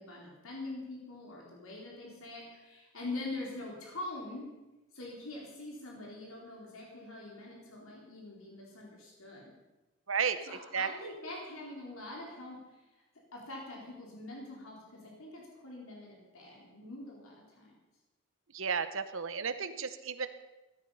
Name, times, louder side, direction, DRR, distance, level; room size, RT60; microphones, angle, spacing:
voice 1, 0.0-4.5 4.9-9.5 10.5-12.7 13.3-17.7, left 2 dB, 85° left, -2 dB, 4.1 m, -44 dB
voice 2, 10.1-10.9 18.5-20.3, right 6 dB, 75° right, 11 dB, 1.0 m, -33 dB
16.0 x 13.5 x 5.7 m, 1.1 s
head